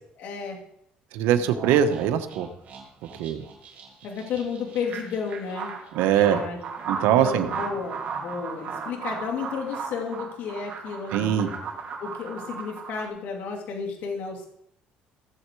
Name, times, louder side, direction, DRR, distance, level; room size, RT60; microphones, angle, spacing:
voice 1, 0.2-0.6 4.0-5.7 6.0-6.6 7.1-11.5 12.0-14.5, left 5 dB, 65° left, 0 dB, 2.9 m, -32 dB
voice 2, 1.1-2.5 3.2-3.4 5.9-6.4 6.9-7.5 11.1-11.5, right 10 dB, 85° right, 9 dB, 1.2 m, -22 dB
sound 1, 1.4-13.1, right 5 dB, 45° right, 3.5 m, -36 dB
17.0 x 7.8 x 4.8 m, 0.73 s
cardioid pair, 115°, 3 cm